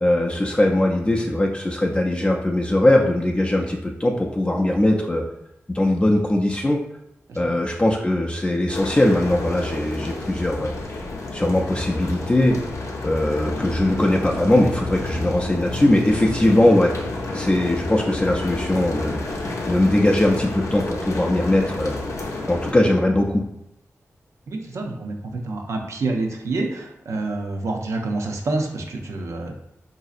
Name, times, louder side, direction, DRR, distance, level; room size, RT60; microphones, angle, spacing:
voice 1, 0.0-5.2 5.7-6.8 7.4-10.7 11.3-12.6 13.0-16.9 17.3-19.2 19.7-22.0 22.5-23.4, left 1 dB, 20° left, -1 dB, 0.4 m, -20 dB
sound 1, 8.7-22.7, left 2 dB, 70° left, 0.5 m, -30 dB
voice 2, 24.5-29.5, right 2 dB, 75° right, 2 dB, 0.5 m, -27 dB
3.9 x 2.6 x 2.5 m, 0.81 s
cardioid pair, 55°, 5 cm